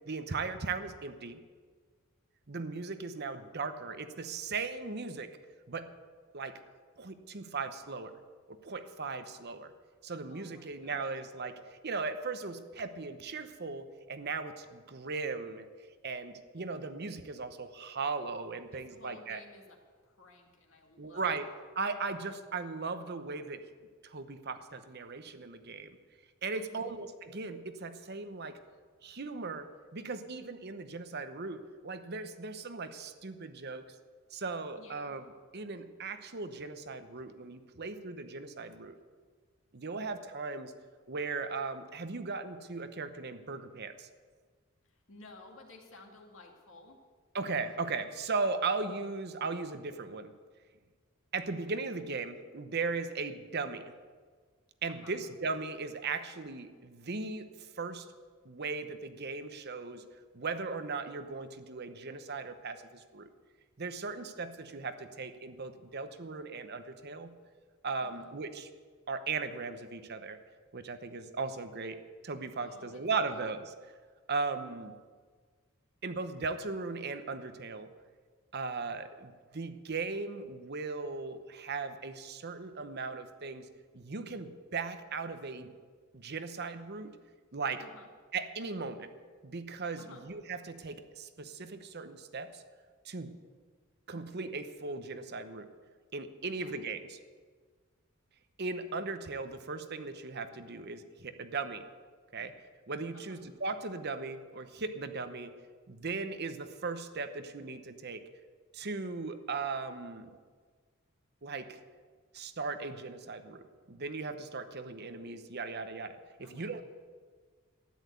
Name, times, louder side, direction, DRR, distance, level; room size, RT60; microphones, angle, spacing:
voice 1, 0.1-1.4 2.5-5.4 5.7-5.9 6.3-6.6 7.0-8.2 8.5-9.7 10.0-15.7 16.0-19.4 21.0-21.5 21.8-23.6 24.0-26.0 26.4-28.6 29.0-33.9 34.3-35.2 35.5-38.9 39.7-40.7 41.1-44.1 47.3-50.3 51.3-53.9 54.8-58.1 58.4-60.0 60.3-63.3 63.8-67.3 67.8-68.7 69.1-70.4 70.7-73.7 74.3-75.0 76.0-77.9 78.5-83.7 83.9-85.7 86.1-87.2 87.5-87.8 88.3-89.1 89.4-92.6 93.0-93.3 94.1-95.7 96.1-97.2 98.6-101.9 102.3-102.5 102.9-105.5 105.9-108.3 108.7-110.3 111.4-111.8 112.3-113.6 113.9-116.8, right 4 dB, 50° right, 9 dB, 0.9 m, -38 dB
voice 2, 10.3-11.0 18.7-19.8 20.0-21.4 26.5-27.0 34.8-35.1 44.9-47.0 54.9-55.2 68.0-68.3 72.6-73.0 73.3-73.4 87.8-88.1 90.0-90.2 96.5-96.8 103.1-103.4 116.4-116.7, left 2 dB, 65° left, 1 dB, 2.4 m, -55 dB
13.5 x 10.5 x 8.2 m, 1.5 s
head